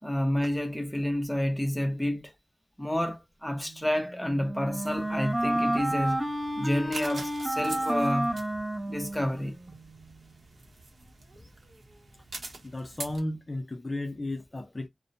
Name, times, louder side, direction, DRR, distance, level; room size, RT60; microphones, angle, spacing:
voice 1, 0.0-2.3 2.8-6.2 6.6-8.3 8.9-9.6, left 1 dB, 5° left, 0.8 m, -29 dB
Wind instrument woodwind instrument, 3.9-9.7, right 1 dB, 35° right, 1.2 m, -30 dB
sound 1, 4.8-13.2, right 2 dB, 80° right, 0.8 m, -46 dB
voice 2, 12.6-14.9, left 1 dB, 35° left, 0.4 m, -34 dB
2.7 x 2.0 x 2.6 m
wide cardioid pair, 90°, 0 cm